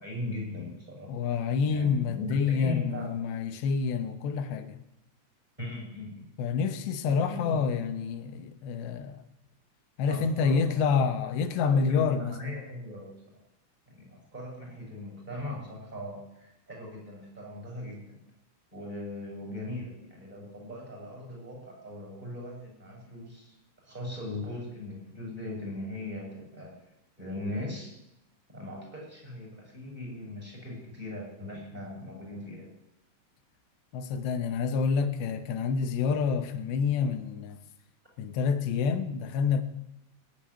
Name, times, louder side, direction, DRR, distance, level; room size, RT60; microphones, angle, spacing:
voice 1, 0.0-1.3 1.7-3.1 5.6-6.3 7.0-7.6 10.1-10.6 10.9-11.0 11.6-13.2 13.9-18.2 18.7-23.6 23.8-26.8 27.2-27.9 28.5-32.8, left 2 dB, 10° right, 6.7 m, -39 dB
voice 2, 1.1-4.8 6.4-9.2 10.0-12.4 33.9-37.6 38.2-39.6, left 5 dB, 85° left, 3.1 m, -28 dB
19.0 x 7.1 x 9.8 m
omnidirectional pair, 4.8 m